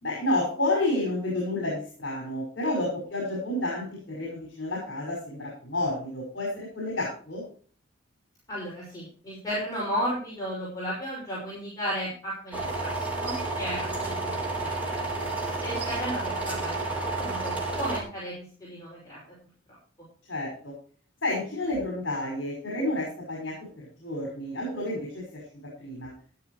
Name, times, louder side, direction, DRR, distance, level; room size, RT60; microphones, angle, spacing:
voice 1, 0.0-7.4 20.3-20.7 21.2-23.5 24.0-25.2 25.8-26.1, left 1 dB, 65° left, -2 dB, 5.7 m, -30 dB
voice 2, 8.5-15.1 15.6-19.2, equal, 20° left, -7 dB, 5.8 m, -34 dB
sound 1, 12.5-18.0, right 3 dB, 10° right, 4.2 m, -31 dB
14.0 x 12.0 x 3.2 m, 0.43 s
head